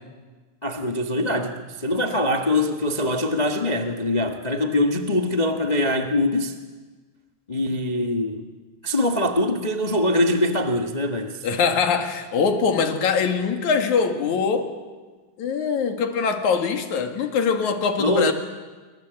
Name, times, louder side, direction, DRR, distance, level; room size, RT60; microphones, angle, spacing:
voice 1, 0.6-6.6 7.5-8.4 8.8-11.4 18.0-18.3, left 1 dB, 40° left, 3 dB, 0.6 m, -23 dB
voice 2, 11.4-14.8 15.4-18.3, left 5 dB, 65° left, 5 dB, 3.3 m, -22 dB
27.5 x 24.5 x 8.0 m, 1.4 s
omnidirectional pair, 3.7 m